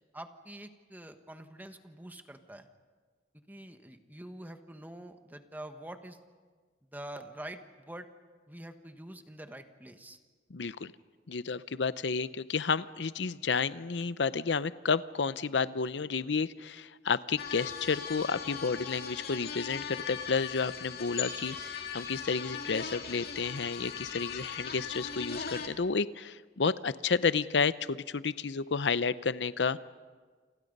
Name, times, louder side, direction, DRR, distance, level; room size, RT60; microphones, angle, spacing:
voice 1, 0.1-2.7 3.5-6.2 6.9-8.1 8.5-10.2, right 1 dB, 10° right, 7 dB, 1.4 m, -46 dB
voice 2, 10.5-10.9 11.3-29.8, left 5 dB, 80° left, 15 dB, 0.7 m, -31 dB
sound 1, 17.4-25.7, left 6 dB, 60° left, 2.8 m, -39 dB
29.0 x 27.5 x 5.4 m, 1.5 s
head